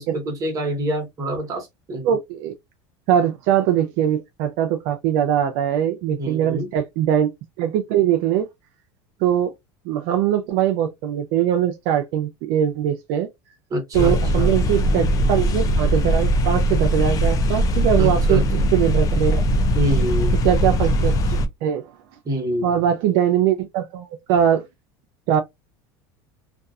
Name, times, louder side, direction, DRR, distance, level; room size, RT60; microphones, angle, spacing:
voice 1, 0.0-2.1 6.1-6.7 13.7-14.6 18.0-18.7 19.7-20.4 22.2-22.9, equal, 30° right, 1.1 m, -26 dB
voice 2, 2.0-2.5 3.1-7.3 7.6-8.5 9.2-9.5 9.9-13.3 13.9-18.4 18.7-19.4 20.4-21.8 22.6-24.7 25.3-25.4, right 10 dB, 65° right, 0.5 m, -21 dB
sound 1, 13.9-21.5, equal, 30° left, 0.4 m, -20 dB
2.6 x 2.3 x 2.3 m
supercardioid pair, 130°, 12 cm